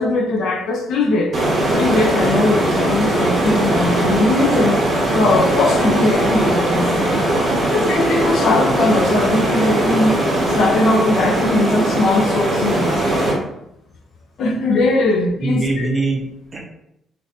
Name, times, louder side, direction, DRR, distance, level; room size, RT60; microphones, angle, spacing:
voice 1, 0.0-1.3 1.7-4.8 5.1-7.1 7.7-10.2 10.5-13.1 14.4-15.9, left 2 dB, 75° left, 3 dB, 0.5 m, -19 dB
sound 1, 1.3-13.3, right 1 dB, 50° right, 1.2 m, -19 dB
voice 2, 15.4-16.6, right 2 dB, 30° right, 0 dB, 0.8 m, -23 dB
3.3 x 2.5 x 2.7 m, 0.81 s
cardioid pair, 90°, 0 cm